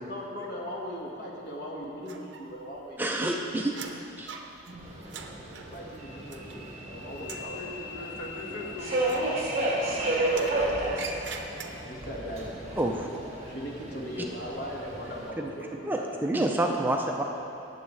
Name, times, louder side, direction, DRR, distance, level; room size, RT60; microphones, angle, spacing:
voice 1, 0.1-3.0 5.7-7.6 9.7-11.1 11.8-13.0 13.4-16.1, equal, 55° left, -3 dB, 1.6 m, -39 dB
sound 1, 2.1-2.8 3.1-6.9 7.2-7.6 9.0-9.9 10.3-12.1, right 5 dB, 70° right, 0.7 m, -44 dB
voice 2, 3.0-3.8 4.2-4.3 12.8-13.1 15.4-15.5 15.9-17.2, right 1 dB, 10° right, 1 dB, 0.4 m, -28 dB
Subway metro underground, 4.8-15.3, right 1 dB, 35° right, 1.7 m, -32 dB
voice 3, 7.0-9.6, left 1 dB, 75° left, -1 dB, 1.4 m, -41 dB
17.5 x 7.1 x 3.3 m, 2.8 s
head